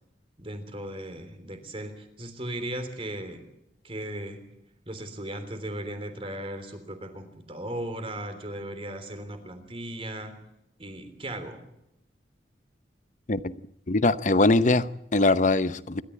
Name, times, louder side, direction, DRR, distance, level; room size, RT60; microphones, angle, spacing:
voice 1, 0.4-3.5 3.8-4.4 4.9-10.3 10.8-11.6, right 1 dB, 30° right, 8 dB, 3.4 m, -37 dB
voice 2, 13.9-16.0, left 2 dB, 45° left, 14 dB, 0.8 m, -22 dB
26.5 x 13.5 x 8.5 m, 0.83 s
head